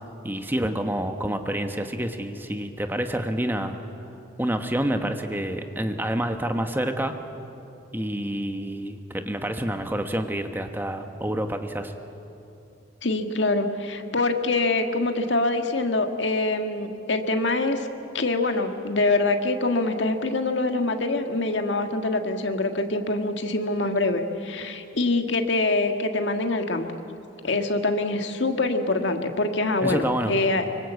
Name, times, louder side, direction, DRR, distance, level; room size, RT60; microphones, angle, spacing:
voice 1, 0.2-3.8 4.4-7.1 7.9-11.9 29.8-30.3, right 1 dB, 10° right, 6 dB, 1.2 m, -28 dB
voice 2, 13.0-17.9 18.1-26.9 27.4-30.6, left 2 dB, 75° left, 5 dB, 1.7 m, -24 dB
25.0 x 24.0 x 8.3 m, 2.8 s
head